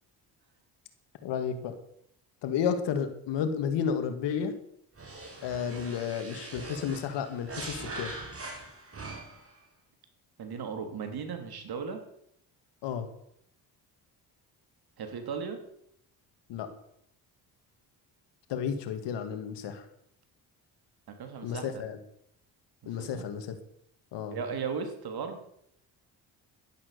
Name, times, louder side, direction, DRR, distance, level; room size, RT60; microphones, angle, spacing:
voice 1, 1.2-1.8 2.4-4.5 5.4-8.1 12.8-13.1 16.5-16.7 18.5-19.9 21.4-22.0 22.9-23.5 24.1-24.4, left 7 dB, 80° left, 8 dB, 2.2 m, -32 dB
sound 1, 5.0-9.5, right 2 dB, 35° right, 4.3 m, -42 dB
voice 2, 10.4-12.0 15.0-15.6 21.2-21.8 22.8-23.2 24.3-25.4, right 6 dB, 60° right, 6 dB, 3.2 m, -36 dB
12.0 x 11.0 x 6.8 m, 0.72 s
cardioid pair, 80°, 42 cm